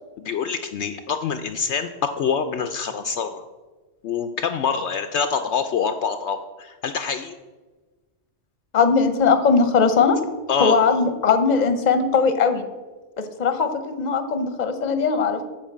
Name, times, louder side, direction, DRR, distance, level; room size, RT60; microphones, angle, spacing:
voice 1, 0.2-3.4 4.0-7.4 10.5-10.8, left 6 dB, 70° left, 8 dB, 0.8 m, -25 dB
voice 2, 8.7-10.2 10.6-12.7 13.2-15.4, left 5 dB, 40° left, 8 dB, 0.9 m, -19 dB
8.8 x 5.3 x 7.4 m, 1.3 s
omnidirectional pair, 1.3 m